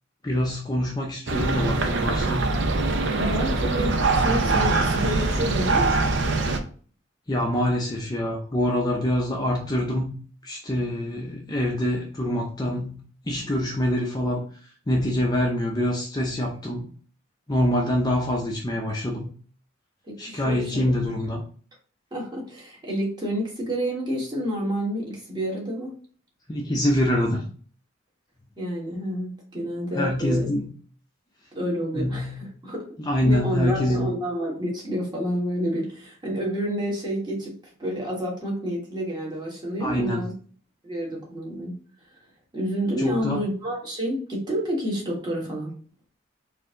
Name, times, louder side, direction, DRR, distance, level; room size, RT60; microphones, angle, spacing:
voice 1, 0.2-2.6 7.3-10.1 10.4-13.0 13.3-14.5 14.9-16.9 17.5-19.3 20.2-21.4 26.5-27.5 30.0-30.7 32.0-32.4 33.0-34.1 39.8-40.2 43.0-43.4, equal, 20° left, -1 dB, 0.5 m, -25 dB
sound 1, 1.3-6.6, right 3 dB, 60° right, 0.6 m, -23 dB
voice 2, 3.1-5.9 20.1-20.8 22.1-25.9 28.6-30.5 31.5-32.9 33.2-37.5 37.8-40.3 40.8-41.7 42.5-45.8, equal, 20° right, -3 dB, 1.5 m, -29 dB
4.4 x 2.7 x 3.7 m, 0.43 s
head